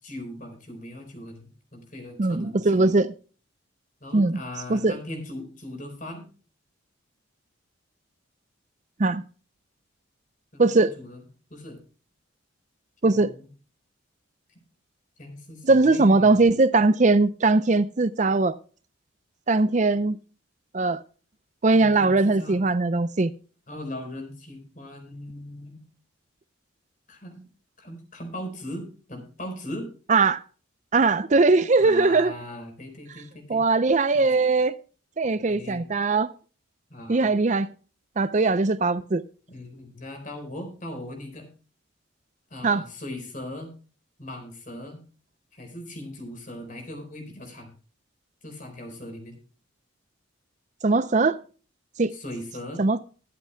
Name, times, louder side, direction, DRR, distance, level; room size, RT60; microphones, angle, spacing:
voice 1, 0.0-2.9 4.0-6.2 10.5-11.2 11.5-11.8 13.0-13.5 15.2-16.5 21.7-22.6 23.7-25.8 27.1-27.5 27.8-29.9 31.8-33.6 34.1-34.3 35.3-35.8 36.9-37.3 39.5-41.5 42.5-43.7 44.2-45.0 45.5-47.8 48.4-49.4 52.1-52.8, left 1 dB, 40° left, 4.2 m, -39 dB
voice 2, 2.2-3.1 4.1-4.4 4.7-5.0 9.0-9.2 10.6-10.9 13.0-13.3 15.6-18.6 19.5-20.2 20.7-21.0 21.6-23.3 30.1-30.4 30.9-32.3 33.5-34.7 35.2-36.3 37.1-37.7 38.2-39.2 42.6-42.9 50.8-51.4 52.0-52.1 52.8-53.0, right 3 dB, 35° right, 0.5 m, -20 dB
22.0 x 8.2 x 2.2 m
head